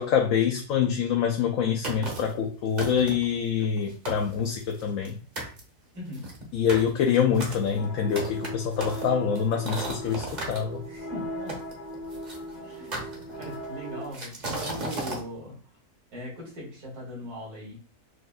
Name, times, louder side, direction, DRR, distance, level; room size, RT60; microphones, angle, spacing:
voice 1, 0.0-5.2 6.5-10.8, left 7 dB, 70° left, 1 dB, 0.9 m, -25 dB
sound 1, 1.8-2.4 2.8-3.3 3.8-3.9 4.1-5.1 5.4-5.6 6.1-10.6 11.5-12.4 12.9-13.7 14.1-15.2, right 2 dB, 35° right, 0.9 m, -35 dB
voice 2, 5.9-6.3 10.9-11.5 12.5-15.6 16.1-17.8, equal, 75° right, -4 dB, 2.3 m, -40 dB
sound 2, 7.8-14.1, equal, 40° left, 0.8 m, -39 dB
6.4 x 2.5 x 2.3 m, 0.38 s
omnidirectional pair, 1.6 m